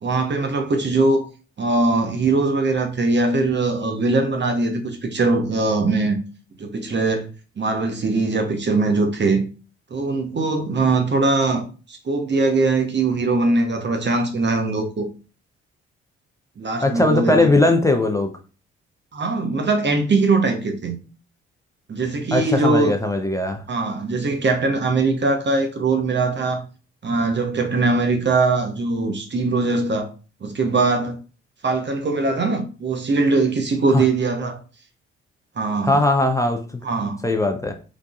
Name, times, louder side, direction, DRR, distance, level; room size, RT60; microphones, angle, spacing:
voice 1, 0.0-1.3 1.6-6.2 6.6-7.3 7.6-9.4 9.9-15.1 16.6-17.5 19.1-21.0 21.9-22.9 23.7-26.6 27.0-30.1 30.4-31.2 31.6-34.6 35.6-36.0 36.8-37.2, right 3 dB, 35° right, 1.1 m, -21 dB
voice 2, 16.8-18.3 22.3-23.6 33.9-34.0 35.8-36.6 37.2-37.7, left 2 dB, 10° left, 0.8 m, -19 dB
5.0 x 3.9 x 2.5 m
figure-of-eight pair, 40°, 32 cm